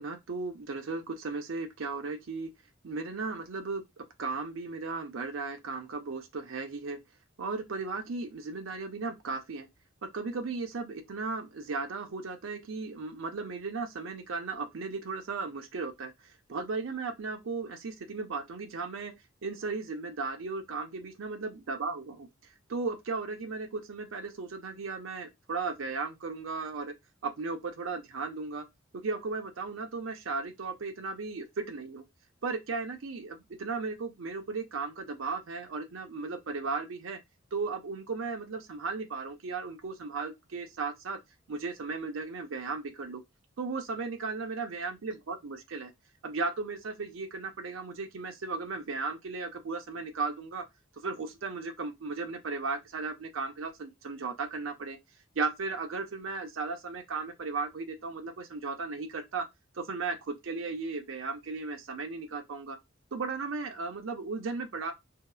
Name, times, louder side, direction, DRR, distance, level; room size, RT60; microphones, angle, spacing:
voice 1, 0.0-2.5 2.8-7.0 7.4-9.7 10.0-19.1 19.4-22.3 22.7-26.9 27.2-28.6 28.9-32.0 32.4-37.2 37.5-41.2 41.5-43.2 43.6-45.9 46.2-50.6 51.0-55.0 55.4-59.5 59.7-62.8 63.1-64.9, right 4 dB, 80° right, 0.6 m, -36 dB
2.7 x 2.0 x 2.3 m
head